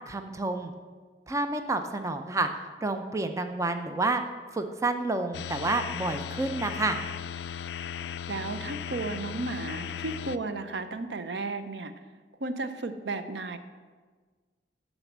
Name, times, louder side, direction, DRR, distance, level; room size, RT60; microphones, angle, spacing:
voice 1, 0.1-0.7 1.3-2.5 2.8-4.2 4.5-7.0, right 2 dB, 20° right, 7 dB, 0.5 m, -29 dB
sound 1, 5.3-10.4, left 8 dB, 70° left, 0.3 m, -37 dB
voice 2, 8.3-11.9 12.4-13.6, right 3 dB, 75° right, 10 dB, 0.6 m, -34 dB
10.0 x 4.1 x 7.2 m, 1.5 s
head